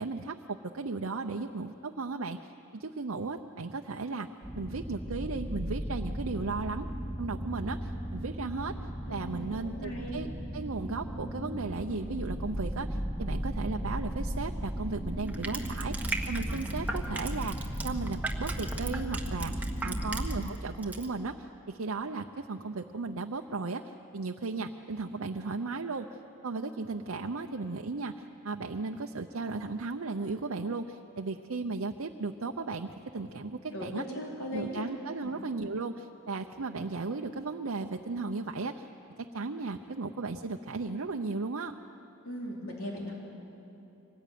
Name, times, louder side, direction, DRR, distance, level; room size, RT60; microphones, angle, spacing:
voice 1, 0.0-4.3 4.5-6.9 7.2-8.8 9.1-10.3 10.5-26.1 26.4-34.0 34.5-38.9 39.3-41.8, right 3 dB, 70° right, 3 dB, 0.7 m, -35 dB
sound 1, 4.4-20.4, equal, 15° left, 3.1 m, -36 dB
voice 2, 9.1-10.2 19.8-20.1 33.7-34.9 35.2-35.3 42.2-43.1, equal, 75° left, -2 dB, 4.1 m, -39 dB
Crushing, 15.3-20.6 20.8-21.1, right 2 dB, 10° right, 1.5 m, -37 dB
24.5 x 19.5 x 9.3 m, 3.0 s
head